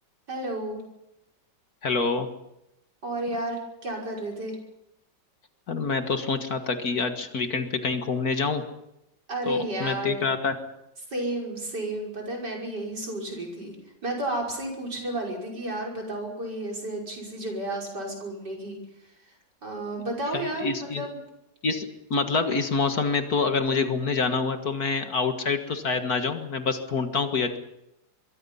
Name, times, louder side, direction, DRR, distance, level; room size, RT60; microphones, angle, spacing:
voice 1, 0.3-0.8 3.0-4.6 9.3-10.2 11.1-13.8 14.0-18.8 19.6-21.2, right 1 dB, 65° right, -1 dB, 6.3 m, -32 dB
voice 2, 1.8-2.3 5.7-8.6 9.5-10.6 20.3-21.1 21.6-27.6, left 4 dB, 55° left, 7 dB, 2.1 m, -26 dB
25.0 x 22.5 x 5.6 m, 0.85 s
omnidirectional pair, 2.0 m